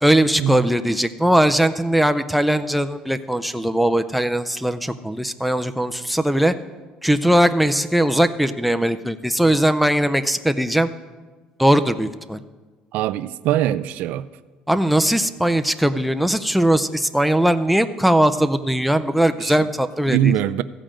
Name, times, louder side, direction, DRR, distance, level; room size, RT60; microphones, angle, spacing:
voice 1, 0.0-6.5 7.0-10.9 11.6-12.4 14.7-20.3, right 1 dB, ahead, 9 dB, 0.4 m, -19 dB
voice 2, 12.9-14.3 19.4-19.7 20.1-20.6, right 11 dB, 75° right, 13 dB, 0.4 m, -22 dB
14.5 x 5.1 x 7.5 m, 1.3 s
cardioid pair, 135°, 3 cm